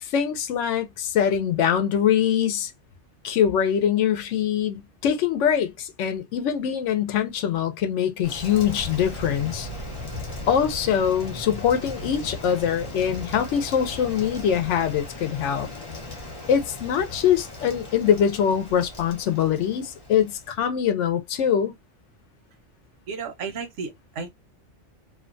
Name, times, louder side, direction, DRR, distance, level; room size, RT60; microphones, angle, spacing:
voice 1, 0.0-2.7 3.2-9.7 10.5-15.7 16.5-21.7, left 8 dB, 80° left, 0.9 m, -23 dB
Rain, 8.2-20.6, left 2 dB, 30° left, 1.0 m, -37 dB
voice 2, 23.1-24.3, right 5 dB, 85° right, 1.1 m, -33 dB
2.7 x 2.1 x 2.5 m
omnidirectional pair, 1.2 m